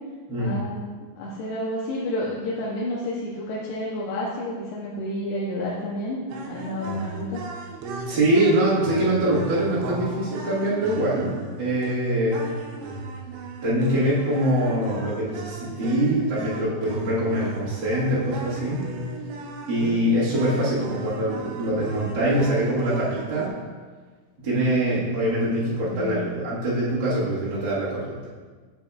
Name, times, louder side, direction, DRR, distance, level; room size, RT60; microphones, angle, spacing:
voice 1, 0.4-0.9 1.2-7.4 25.9-26.2, left 1 dB, 90° left, -6 dB, 2.8 m, -30 dB
sound 1, 6.3-23.5, right 3 dB, 80° right, 2.7 m, -36 dB
voice 2, 8.0-12.5 13.6-18.9 19.7-23.5 24.4-28.1, right 1 dB, 55° right, -10 dB, 1.3 m, -24 dB
7.3 x 7.1 x 2.3 m, 1.5 s
omnidirectional pair, 4.6 m